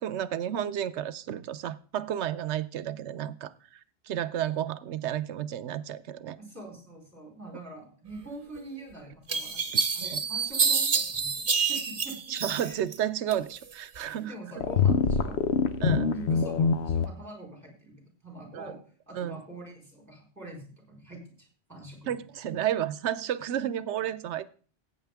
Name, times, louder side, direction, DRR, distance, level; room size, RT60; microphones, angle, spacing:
voice 1, 0.0-3.5 4.1-6.4 10.0-10.2 12.3-14.6 15.8-16.1 18.5-18.7 19.1-19.4 22.1-24.5, right 10 dB, 85° right, 16 dB, 0.9 m, -32 dB
voice 2, 6.4-12.2 12.6-12.8 14.2-15.4 16.1-18.8 19.1-22.2, right 1 dB, 15° right, -1 dB, 4.1 m, -44 dB
sound 1, 8.6-8.7 9.3-13.0 13.3-14.1, right 5 dB, 50° right, 1.2 m, -28 dB
sound 2, 14.6-17.1, left 5 dB, 75° left, 1.0 m, -24 dB
14.5 x 8.6 x 3.5 m, 0.42 s
omnidirectional pair, 1.1 m